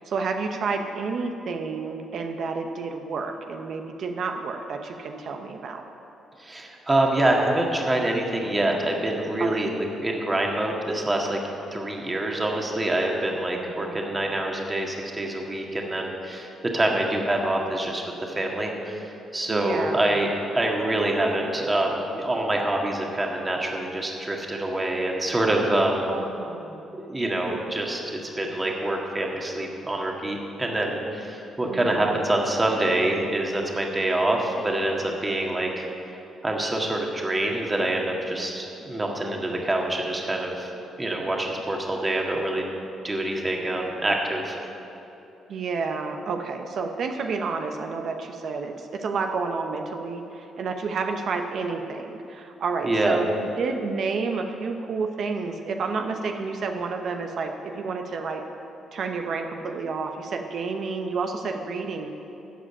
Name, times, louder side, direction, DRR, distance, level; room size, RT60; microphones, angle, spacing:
voice 1, 0.0-5.8 9.4-9.6 13.6-14.3 19.5-20.1 26.1-26.8 31.7-32.2 45.5-58.4 58.9-62.1, right 4 dB, 60° right, 4 dB, 0.8 m, -30 dB
voice 2, 6.4-11.4 11.7-16.5 16.7-26.1 26.9-35.9 36.4-40.7 41.0-42.6 43.0-44.6 52.8-53.2, right 1 dB, 20° right, 0 dB, 1.8 m, -26 dB
14.0 x 5.1 x 8.7 m, 2.9 s
cardioid pair, 90°, 0 cm